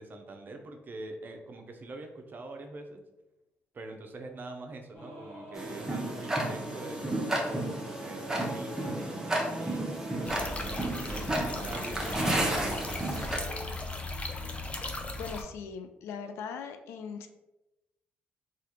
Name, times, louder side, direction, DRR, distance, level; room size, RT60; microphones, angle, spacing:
voice 1, 0.0-3.0 3.7-14.0, right 2 dB, 45° right, 4 dB, 0.6 m, -44 dB
Singing / Musical instrument, 4.9-10.6, equal, 50° left, 1.1 m, -43 dB
Tick-tock, 5.5-13.4, right 1 dB, 15° right, 0.8 m, -32 dB
sound 1, 10.2-15.4, left 2 dB, 30° left, 0.5 m, -37 dB
voice 2, 15.2-17.3, left 6 dB, 80° left, 7 dB, 0.3 m, -40 dB
3.3 x 2.4 x 2.9 m, 0.97 s
supercardioid pair, 60°, 4 cm